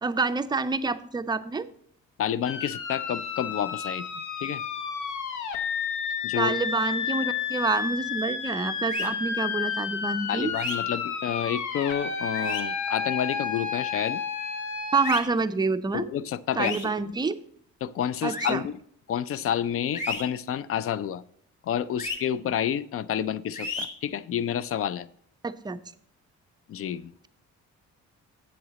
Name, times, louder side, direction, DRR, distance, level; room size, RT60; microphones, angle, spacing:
voice 1, 0.0-1.7 6.4-10.5 14.9-16.1 16.6-17.4 18.2-18.6 25.4-25.8, right 4 dB, 15° right, 0.4 m, -27 dB
voice 2, 2.2-4.6 6.2-6.6 10.3-14.2 15.9-16.7 17.8-18.8 19.1-21.2 21.6-25.1 26.7-27.1, left 9 dB, 50° left, 0.4 m, -29 dB
sound 1, 2.4-15.2, left 6 dB, 75° left, 1.0 m, -31 dB
sound 2, 8.9-9.1 10.5-10.8 12.3-12.6 15.0-15.2 16.6-16.9 18.3-18.5 20.0-20.2 22.0-22.2 23.6-23.9, left 2 dB, 25° left, 1.7 m, -32 dB
7.7 x 7.2 x 4.0 m
cardioid pair, 90°, 30 cm